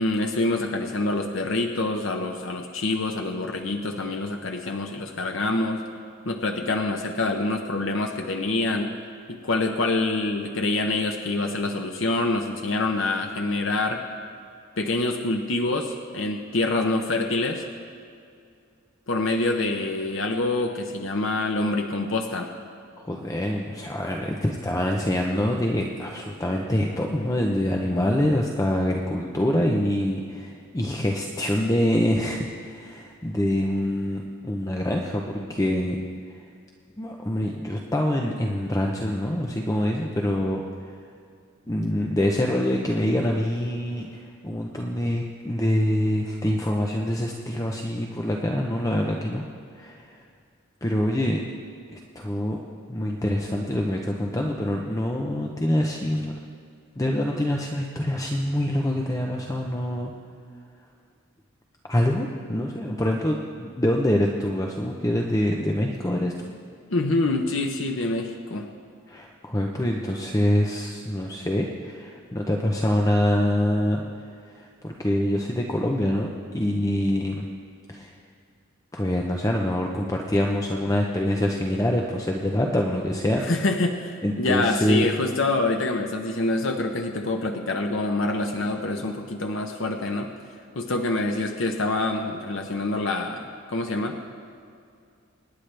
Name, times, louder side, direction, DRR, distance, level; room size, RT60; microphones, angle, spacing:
voice 1, 0.0-5.8 6.3-8.9 9.3-14.0 14.8-17.6 19.1-22.5 66.9-68.7 83.4-90.3 90.8-94.2, left 2 dB, 70° left, 3 dB, 0.9 m, -26 dB
voice 2, 23.0-36.0 37.0-40.6 41.7-49.4 49.7-50.1 50.8-51.4 51.9-52.6 52.9-56.3 57.0-60.1 61.9-66.3 69.1-74.0 74.5-76.3 76.5-77.4 77.9-78.1 78.9-83.4 84.2-85.1, left 1 dB, 15° left, 0 dB, 0.7 m, -25 dB
25.5 x 10.5 x 3.4 m, 2.3 s
head